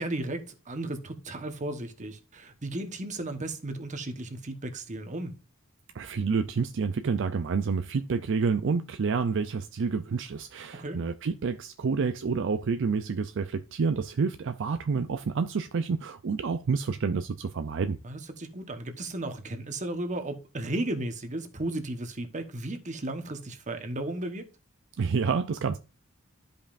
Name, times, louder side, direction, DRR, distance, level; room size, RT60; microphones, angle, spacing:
voice 1, 0.0-5.3 10.7-11.0 18.0-24.4, right 1 dB, 35° right, 1.2 m, -34 dB
voice 2, 5.9-18.0 25.0-25.8, right 5 dB, 60° right, 0.5 m, -28 dB
12.5 x 5.4 x 2.5 m
head